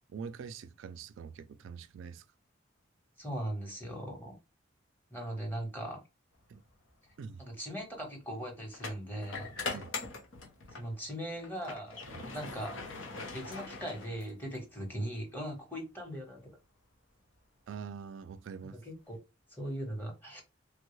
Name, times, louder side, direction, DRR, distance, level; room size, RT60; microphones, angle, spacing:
voice 1, 0.1-2.3 6.5-6.6 7.2-7.4 9.7-9.9 12.1-12.3 17.7-18.8, right 6 dB, 75° right, 0.3 m, -44 dB
voice 2, 3.2-4.4 5.1-6.0 7.4-9.5 10.7-12.0 12.3-12.8 13.3-16.5 18.8-19.2 19.5-20.4, equal, 10° left, 1.0 m, -39 dB
sound 1, 6.7-6.9 8.7-10.9 11.3-14.6, left 3 dB, 75° left, 1.0 m, -41 dB
3.4 x 2.2 x 3.0 m
head